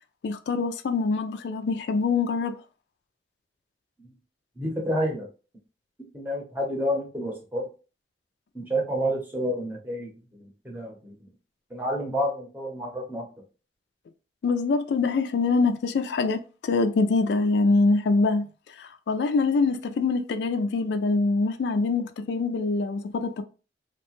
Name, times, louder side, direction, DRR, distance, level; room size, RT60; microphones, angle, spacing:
voice 1, 0.2-2.6 14.4-18.5 18.8-23.4, left 3 dB, 75° left, 0.3 m, -24 dB
voice 2, 4.6-5.3 6.1-7.6 8.5-11.2 11.7-13.3, equal, 10° right, 0.7 m, -29 dB
2.8 x 2.1 x 3.0 m
head